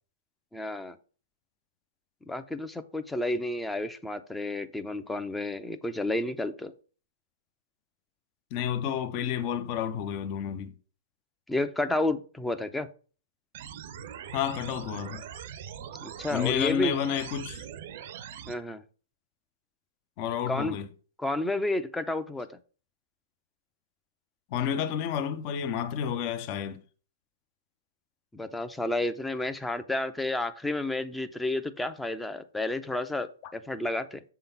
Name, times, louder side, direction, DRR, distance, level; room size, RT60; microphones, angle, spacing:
voice 1, 0.5-1.0 2.3-6.7 11.5-12.9 16.0-16.9 18.5-18.8 20.5-20.8 21.2-22.5 28.3-34.2, left 2 dB, 5° left, 0.6 m, -31 dB
voice 2, 8.5-10.7 14.3-15.3 16.3-17.6 20.2-20.9 24.5-26.8, left 9 dB, 40° left, 0.8 m, -30 dB
sound 1, 13.5-18.5, right 9 dB, 50° right, 0.7 m, -42 dB
6.9 x 3.8 x 5.5 m
hypercardioid pair, 120°, 0 cm